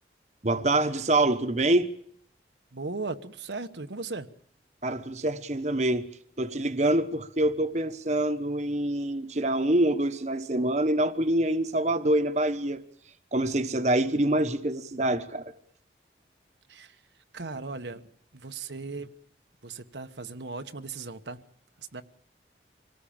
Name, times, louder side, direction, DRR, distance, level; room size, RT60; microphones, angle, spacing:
voice 1, 0.4-1.9 4.8-6.0 6.4-12.8 13.3-15.5, right 1 dB, 40° right, 1.2 m, -25 dB
voice 2, 2.7-4.3 16.7-17.0 17.3-18.0 18.3-19.1 19.6-21.4 21.9-22.0, right 3 dB, 85° right, 1.3 m, -37 dB
26.0 x 18.5 x 8.9 m
head